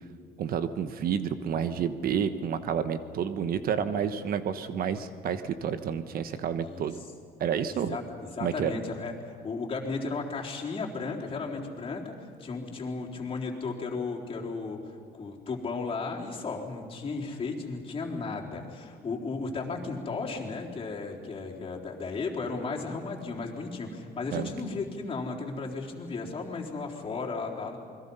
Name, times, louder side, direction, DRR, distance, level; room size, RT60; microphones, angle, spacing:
voice 1, 0.4-6.9 7.4-8.0 8.4-8.7 24.3-24.5, right 8 dB, 60° right, 11 dB, 1.2 m, -30 dB
voice 2, 7.7-9.1 9.4-27.8, left 4 dB, 35° left, -1 dB, 3.9 m, -35 dB
28.5 x 21.5 x 5.6 m, 2.4 s
cardioid pair, 110°, 17 cm